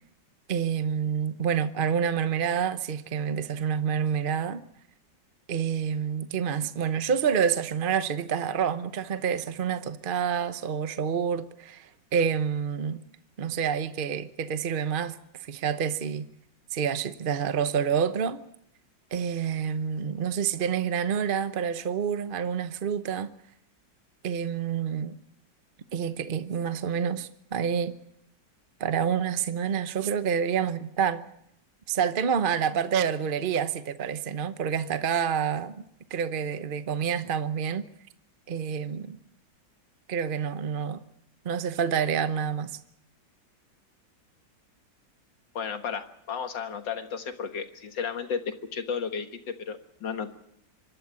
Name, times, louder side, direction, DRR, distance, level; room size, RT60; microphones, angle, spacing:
voice 1, 0.5-4.6 5.5-13.0 13.4-16.3 16.7-18.4 19.1-23.3 24.2-25.2 25.9-28.0 28.8-31.2 31.9-35.8 36.1-37.9 38.5-39.2 40.1-41.0 41.4-42.7, right 7 dB, 45° right, 0.7 m, -28 dB
voice 2, 45.6-49.4 49.7-50.3, left 6 dB, 70° left, 2.2 m, -33 dB
25.0 x 12.5 x 8.6 m
omnidirectional pair, 2.0 m